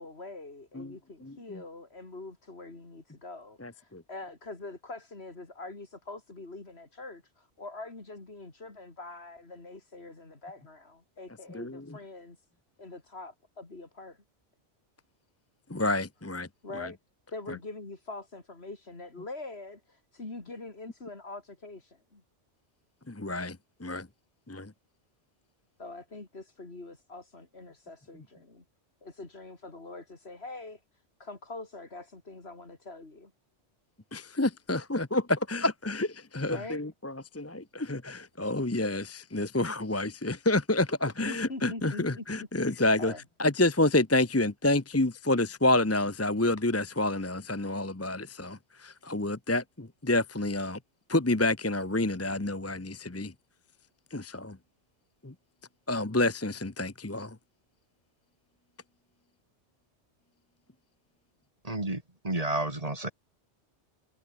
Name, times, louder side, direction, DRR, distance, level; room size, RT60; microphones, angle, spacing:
voice 1, 0.0-12.5 12.8-14.2 16.6-17.0 17.3-22.2 25.8-28.6 29.0-33.3 36.5-36.8 41.2-43.2, left 2 dB, 60° left, 3.7 m, -44 dB
voice 2, 3.6-4.0 11.5-12.0 15.7-16.5 16.7-16.9 17.5-17.6 23.1-24.1 24.5-24.7 34.1-43.1 43.4-50.8 51.1-53.3 54.1-54.6 55.2-55.3 55.9-57.4, left 2 dB, 15° left, 0.9 m, -29 dB
voice 3, 61.6-63.1, right 1 dB, 30° right, 3.0 m, -31 dB
omnidirectional pair, 1.2 m